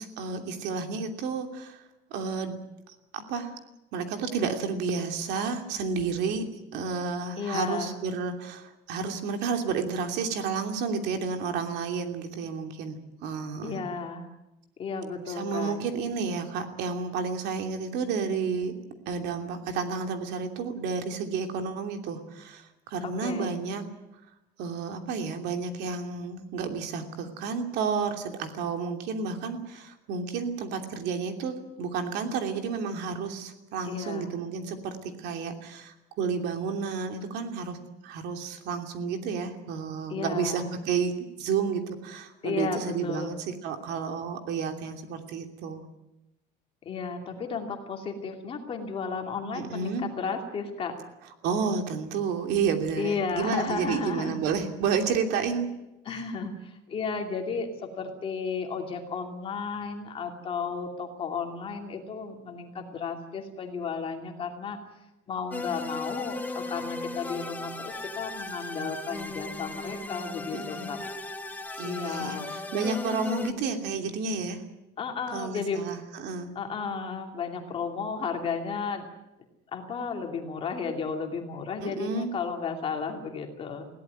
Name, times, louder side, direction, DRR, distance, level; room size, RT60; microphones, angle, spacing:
voice 1, 0.0-1.8 2.1-2.6 2.9-3.6 3.9-6.5 6.7-13.8 15.3-18.7 19.1-23.8 24.6-37.8 38.0-45.8 49.5-50.1 51.4-55.7 56.1-56.2 70.5-70.9 71.8-74.6 75.3-76.5 81.8-82.3, right 5 dB, 60° right, 5 dB, 2.9 m, -31 dB
voice 2, 7.4-8.0 13.6-14.3 14.8-15.8 23.0-23.6 33.9-34.3 40.1-40.7 42.4-43.3 46.8-51.0 53.0-54.4 56.0-64.8 65.3-71.0 71.8-72.5 73.4-73.7 75.0-75.8 76.5-79.1 79.7-83.9, left 5 dB, 30° left, 3 dB, 2.7 m, -33 dB
sound 1, 65.5-73.5, left 2 dB, 10° left, 1.1 m, -37 dB
21.5 x 17.0 x 9.5 m, 0.94 s
cardioid pair, 180°, 20 cm